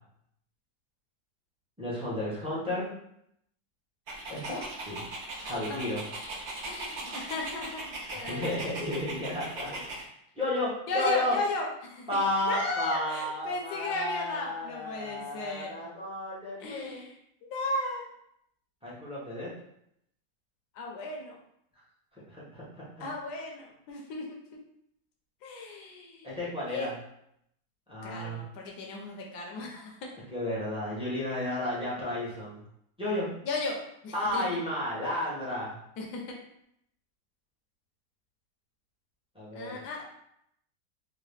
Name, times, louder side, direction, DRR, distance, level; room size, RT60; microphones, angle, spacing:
voice 1, 1.8-2.9 4.3-5.0 5.5-6.0 8.1-9.8 10.4-11.4 12.1-17.0 18.8-19.5 22.3-23.1 26.2-26.9 27.9-28.4 30.3-32.6 33.0-33.3 34.1-35.8 39.3-40.0, left 1 dB, 5° right, -8 dB, 0.5 m, -32 dB
Dog, 4.1-10.0, right 2 dB, 85° right, 0.6 m, -39 dB
voice 2, 5.4-5.8 6.6-8.6 10.9-15.7 16.6-17.1 17.4-18.1 20.7-21.4 23.0-24.3 25.4-26.3 26.7-26.9 28.0-30.1 33.4-33.8 34.0-34.4 36.0-36.2 39.5-40.0, left 2 dB, 70° left, 0 dB, 1.2 m, -35 dB
3.6 x 2.1 x 3.4 m, 0.75 s
omnidirectional pair, 1.9 m